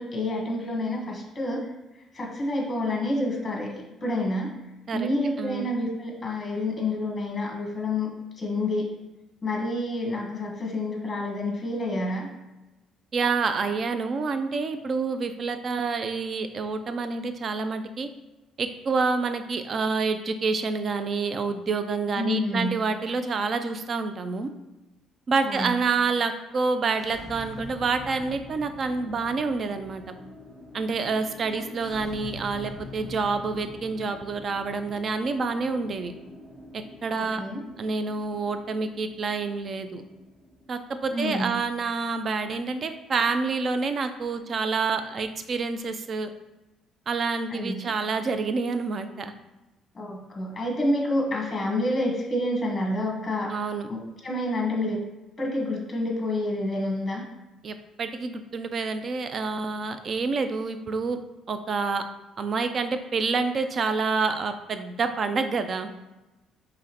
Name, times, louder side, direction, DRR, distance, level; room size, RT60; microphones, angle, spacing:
voice 1, 0.0-1.7 2.1-4.5 4.9-8.1 8.4-8.9 9.4-12.3 22.2-22.8 25.4-25.7 31.5-31.6 37.1-37.6 41.1-41.5 47.5-47.8 49.9-53.6 53.9-55.0 55.4-57.2, left 1 dB, 20° left, 0 dB, 1.1 m, -28 dB
voice 2, 5.4-5.7 13.1-18.1 18.6-24.5 25.3-30.0 30.7-36.1 36.7-37.4 37.8-40.0 40.7-46.3 47.1-49.3 53.5-53.9 57.6-61.2 61.5-62.0 62.4-65.9, right 4 dB, 40° right, 9 dB, 0.4 m, -28 dB
sound 1, 27.0-41.9, left 1 dB, 20° right, 1.1 m, -45 dB
4.8 x 3.0 x 2.9 m, 1.0 s
cardioid pair, 120°, 0 cm